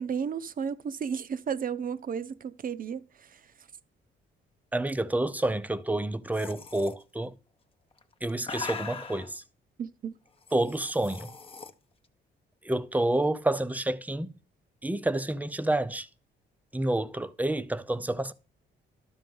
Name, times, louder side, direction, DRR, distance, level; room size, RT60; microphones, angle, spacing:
voice 1, 0.0-3.4 9.8-10.1, right 7 dB, 45° right, 0.6 m, -33 dB
voice 2, 4.7-7.4 8.2-9.4 10.5-11.3 12.6-14.3 14.8-16.1 16.7-18.3, right 1 dB, 10° right, 0.5 m, -29 dB
sound 1, 6.3-6.9 7.9-9.3 10.4-11.7, left 5 dB, 30° left, 0.8 m, -40 dB
12.0 x 4.4 x 5.3 m
cardioid pair, 90°, 20 cm